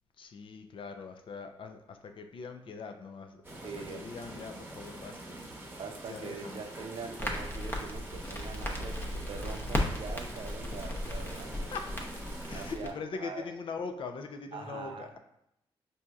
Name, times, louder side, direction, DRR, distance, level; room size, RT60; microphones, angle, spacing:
voice 1, 0.2-5.4 6.1-6.6 10.3-10.4 11.7-11.9 12.5-15.2, left 5 dB, 55° left, 6 dB, 0.4 m, -42 dB
sound 1, 3.4-12.8, right 1 dB, 20° right, 0.9 m, -45 dB
voice 2, 3.6-4.0 5.8-11.7 12.5-13.5 14.5-15.2, right 5 dB, 60° right, 4 dB, 0.5 m, -43 dB
Crackle, 7.2-12.9, left 1 dB, 20° left, 0.7 m, -36 dB
4.3 x 2.7 x 2.3 m, 0.82 s
cardioid pair, 70°, 10 cm